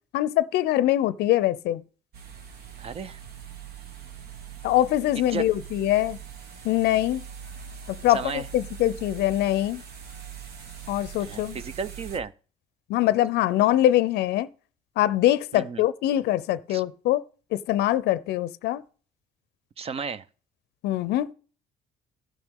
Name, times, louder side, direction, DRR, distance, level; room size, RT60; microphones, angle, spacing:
voice 1, 0.1-1.8 4.6-6.2 6.6-7.2 7.9-9.8 10.9-11.6 12.9-14.5 15.0-17.2 17.5-18.8 20.8-21.3, left 14 dB, 80° left, 0.5 m, -23 dB
sound 1, 2.1-12.2, right 7 dB, 70° right, 1.4 m, -42 dB
voice 2, 2.8-3.2 5.2-5.5 8.1-8.5 11.2-12.3 15.5-15.8 16.7-16.8 19.8-20.3, right 5 dB, 35° right, 0.6 m, -34 dB
15.5 x 6.0 x 3.6 m
cardioid pair, 110°, 17 cm